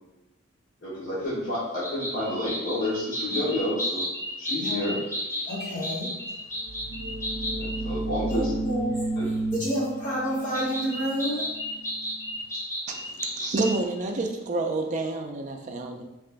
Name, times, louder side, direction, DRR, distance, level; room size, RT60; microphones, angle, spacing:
voice 1, 0.8-4.1 4.4-5.0 7.5-8.5 9.2-9.3, left 1 dB, 65° left, -10 dB, 1.1 m, -30 dB
sound 1, 1.8-7.8 10.5-13.8, equal, 15° left, 0.6 m, -33 dB
voice 2, 4.5-4.9 5.5-6.1 8.3-9.1 9.5-11.5, equal, 40° left, -7 dB, 1.1 m, -29 dB
sound 2, 6.6-12.2, right 2 dB, 75° right, 0.6 m, -32 dB
voice 3, 12.9-16.0, right 3 dB, 35° right, 3 dB, 0.3 m, -29 dB
2.9 x 2.4 x 3.3 m, 1.0 s
head